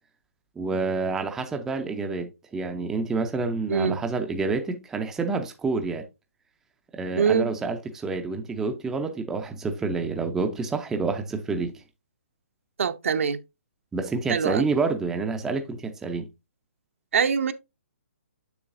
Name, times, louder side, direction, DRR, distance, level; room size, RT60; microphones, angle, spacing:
voice 1, 0.6-6.1 6.9-11.8 13.9-16.3, right 4 dB, 5° right, 0.5 m, -28 dB
voice 2, 3.7-4.0 7.2-7.5 12.8-13.4 14.3-14.7 17.1-17.5, right 6 dB, 70° right, 0.8 m, -23 dB
7.1 x 6.3 x 2.5 m
hypercardioid pair, 160°, 7 cm